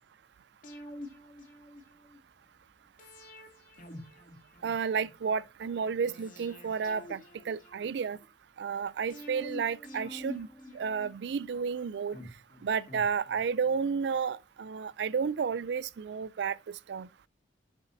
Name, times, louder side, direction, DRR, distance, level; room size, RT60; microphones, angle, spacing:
sound 1, 0.6-2.2 3.0-5.1 6.0-8.3 9.1-11.5 12.1-13.8 14.1-14.2, left 1 dB, 45° left, 2.3 m, -47 dB
voice 1, 4.6-7.2 7.5-8.2 8.6-10.5 10.7-12.2 12.6-16.6 16.9-17.1, right 6 dB, 75° right, 0.4 m, -31 dB
8.2 x 7.0 x 2.6 m
head